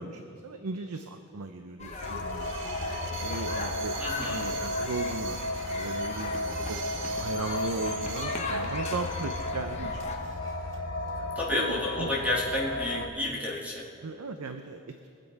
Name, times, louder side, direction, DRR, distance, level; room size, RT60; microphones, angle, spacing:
voice 1, 0.0-2.6 3.2-3.9 4.2-5.4 5.7-10.4 11.1-12.1 14.0-15.1, right 3 dB, 90° right, 7 dB, 0.6 m, -37 dB
sound 1, 1.8-10.2, left 3 dB, 30° left, 1.2 m, -38 dB
sound 2, 1.9-9.5 10.0-10.8 11.1-11.2, right 7 dB, 55° right, 0.8 m, -43 dB
sound 3, 2.0-13.1, left 2 dB, 65° left, 0.9 m, -34 dB
voice 2, 4.0-4.6 11.4-13.9, left 1 dB, 5° right, -4 dB, 2.0 m, -30 dB
22.5 x 7.7 x 4.7 m, 2.5 s
head